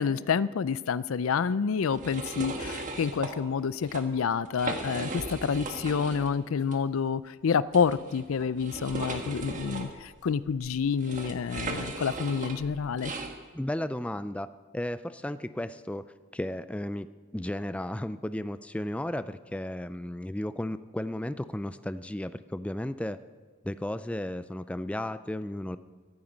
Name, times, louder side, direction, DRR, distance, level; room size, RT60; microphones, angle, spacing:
voice 1, 0.0-13.1, left 6 dB, 80° left, 18 dB, 0.4 m, -28 dB
sound 1, 1.9-3.3 3.7-4.0 4.5-6.3 6.7-6.8 7.7-13.3, right 2 dB, 40° right, 1.5 m, -37 dB
voice 2, 13.5-14.5 14.7-16.0 16.3-17.1 17.3-23.2 23.6-25.8, left 1 dB, 5° left, 12 dB, 0.3 m, -34 dB
14.5 x 13.5 x 5.2 m, 1.5 s
head